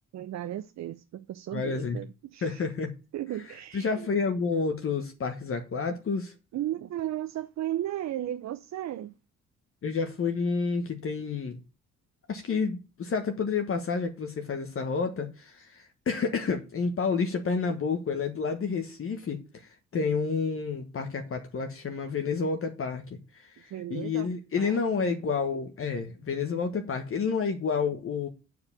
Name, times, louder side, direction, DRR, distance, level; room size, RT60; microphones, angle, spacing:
voice 1, 0.1-2.7 3.1-4.1 6.5-9.2 23.7-24.3 24.6-25.1, right 12 dB, 65° right, 0.6 m, -35 dB
voice 2, 1.5-2.0 2.4-2.9 3.7-6.3 9.8-11.6 12.3-28.3, left 5 dB, 45° left, 1.3 m, -30 dB
7.7 x 4.8 x 7.3 m
cardioid pair, 90°, 30 cm